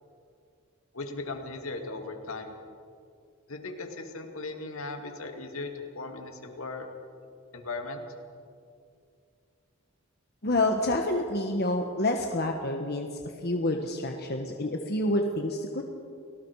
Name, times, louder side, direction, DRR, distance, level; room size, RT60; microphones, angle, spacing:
voice 1, 0.9-2.5 3.5-6.9 7.5-8.0, left 3 dB, 75° left, 4 dB, 2.5 m, -37 dB
voice 2, 10.4-15.8, left 1 dB, 50° left, 3 dB, 1.3 m, -28 dB
30.0 x 19.5 x 4.8 m, 2.4 s
head